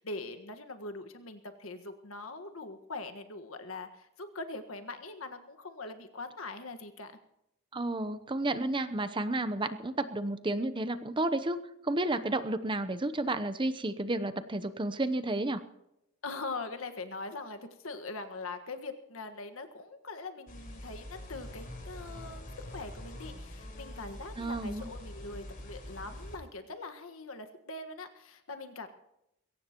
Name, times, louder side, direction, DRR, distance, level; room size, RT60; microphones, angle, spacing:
voice 1, 0.0-7.2 16.2-28.9, left 3 dB, 85° left, 7 dB, 1.6 m, -42 dB
voice 2, 7.7-15.6 24.4-24.9, right 2 dB, 25° right, 11 dB, 0.8 m, -32 dB
sound 1, 20.5-26.4, left 1 dB, 45° left, 4.4 m, -45 dB
22.0 x 17.0 x 3.0 m, 0.85 s
head